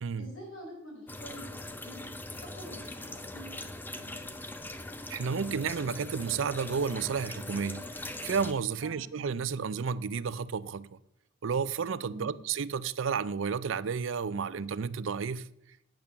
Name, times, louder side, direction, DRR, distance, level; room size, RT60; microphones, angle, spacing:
voice 1, 0.2-2.0 2.3-4.3 8.8-9.1 12.1-12.3, equal, 85° left, 4.8 m, -47 dB
sound 1, 1.1-8.5, left 2 dB, 10° left, 0.6 m, -41 dB
voice 2, 5.1-10.9 11.4-15.5, right 6 dB, 75° right, 0.5 m, -32 dB
8.9 x 8.8 x 6.8 m
head